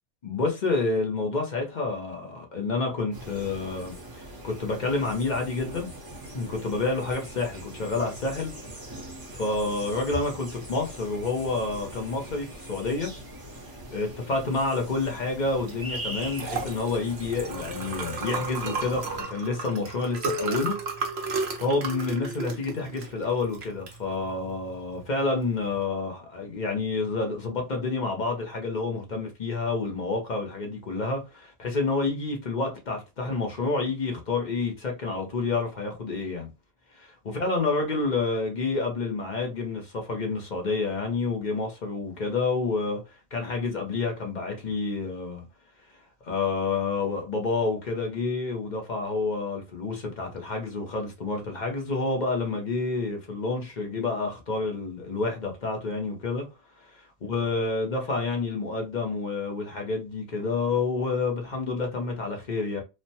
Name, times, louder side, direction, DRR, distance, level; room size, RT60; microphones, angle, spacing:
voice 1, 0.2-5.9 6.3-8.5 9.3-13.1 13.9-36.5 37.2-43.0 43.3-45.4 46.2-56.5 57.2-62.8, left 3 dB, 40° left, 0.7 m, -29 dB
sound 1, 3.1-19.2, right 1 dB, 20° right, 0.7 m, -41 dB
Liquid, 15.6-25.8, right 3 dB, 55° right, 1.0 m, -34 dB
3.2 x 2.1 x 2.7 m
omnidirectional pair, 1.5 m